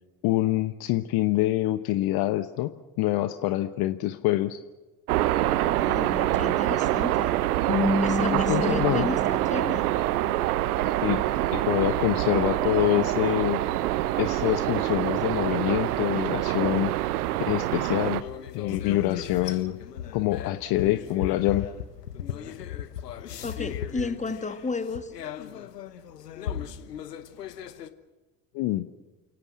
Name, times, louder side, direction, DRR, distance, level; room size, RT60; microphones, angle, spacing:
voice 1, 0.2-4.6 8.3-9.1 11.0-13.6 14.2-16.9 17.5-19.8 20.1-21.7 28.5-28.9, left 15 dB, 50° left, 12 dB, 1.1 m, -26 dB
sound 1, 5.1-18.2, right 15 dB, 65° right, 1.0 m, -25 dB
voice 2, 5.6-7.3 8.0-9.9 23.4-25.1, left 4 dB, 15° left, 9 dB, 2.2 m, -33 dB
sound 2, 7.7-10.8, left 3 dB, 85° right, 3.6 m, -30 dB
sound 3, 18.2-27.9, left 9 dB, 75° left, 1.2 m, -37 dB
29.0 x 18.0 x 7.5 m, 1.2 s
figure-of-eight pair, 60°, 48 cm